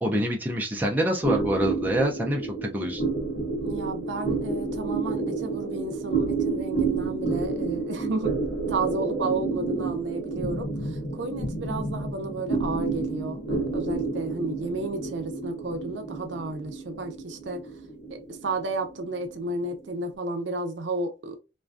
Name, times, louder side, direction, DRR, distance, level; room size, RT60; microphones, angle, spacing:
voice 1, 0.0-3.0, equal, 10° right, 0.4 m, -26 dB
sound 1, 1.2-20.0, right 3 dB, 80° left, 0.8 m, -30 dB
voice 2, 3.6-8.3 8.7-17.7 18.1-21.4, right 2 dB, 75° right, 0.5 m, -32 dB
2.4 x 2.2 x 2.4 m
head